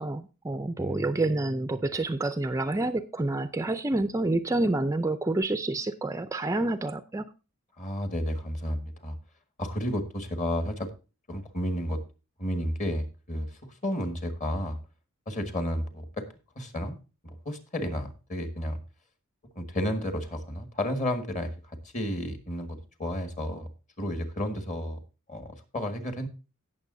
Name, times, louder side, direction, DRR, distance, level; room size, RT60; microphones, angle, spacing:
voice 1, 0.0-7.3, right 2 dB, 15° right, 11 dB, 0.4 m, -28 dB
voice 2, 0.8-1.8 7.8-9.2 9.6-10.9 11.3-12.0 12.4-14.8 15.3-16.2 16.6-17.0 17.2-18.8 19.6-23.7 24.0-25.0 25.3-26.3, equal, 35° left, 7 dB, 1.7 m, -32 dB
17.5 x 6.9 x 2.6 m, 0.32 s
head